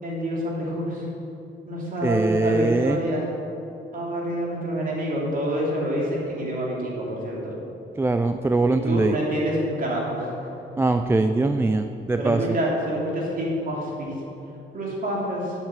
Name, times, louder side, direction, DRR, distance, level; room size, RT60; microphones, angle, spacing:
voice 1, 0.0-1.1 1.7-3.3 3.9-7.6 8.8-10.3 12.2-14.1 14.7-15.5, equal, 45° right, -3 dB, 2.9 m, -27 dB
voice 2, 2.0-3.0 8.0-9.2 10.8-12.6, right 2 dB, 10° right, 7 dB, 0.3 m, -22 dB
8.8 x 7.3 x 7.6 m, 2.8 s
cardioid pair, 120°, 20 cm